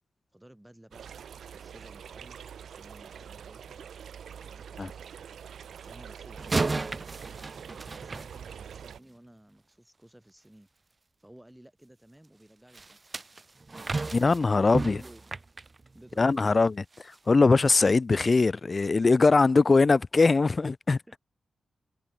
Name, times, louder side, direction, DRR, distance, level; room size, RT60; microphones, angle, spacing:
voice 1, 0.3-1.1 1.5-2.4 2.6-3.7 4.4-5.1 5.7-7.3 7.8-10.7 11.2-13.1 14.6-15.2 15.9-16.7 21.1-21.2, right 1 dB, 10° right, 3.8 m, -54 dB
sound 1, 0.9-9.0, right 8 dB, 80° right, 2.7 m, -45 dB
sound 2, 6.4-9.0 12.7-16.5 16.9-17.2 17.7-17.8, right 3 dB, 40° right, 1.7 m, -34 dB
voice 2, 14.1-15.0 16.2-16.7 17.3-21.2, left 3 dB, 45° left, 0.5 m, -21 dB
cardioid pair, 45°, 0 cm